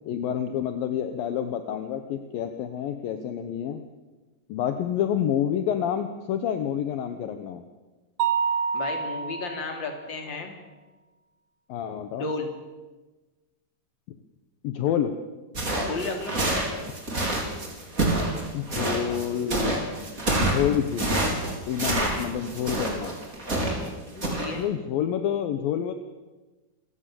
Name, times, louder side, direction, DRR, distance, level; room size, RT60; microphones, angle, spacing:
voice 1, 0.1-3.8 4.5-7.6 11.7-12.3 14.6-15.1 18.5-19.9 20.4-21.3 21.7-23.1 24.6-25.9, left 9 dB, 75° left, 8 dB, 2.2 m, -28 dB
Mallet percussion, 8.2-10.0, right 7 dB, 70° right, 3.1 m, -27 dB
voice 2, 8.7-10.5 12.2-12.5 15.8-16.3 24.1-24.6, left 3 dB, 25° left, 4 dB, 3.3 m, -33 dB
sound 1, 15.5-23.9 24.2-24.5, right 2 dB, 20° right, 4.0 m, -27 dB
28.5 x 16.5 x 7.7 m, 1.2 s
omnidirectional pair, 5.5 m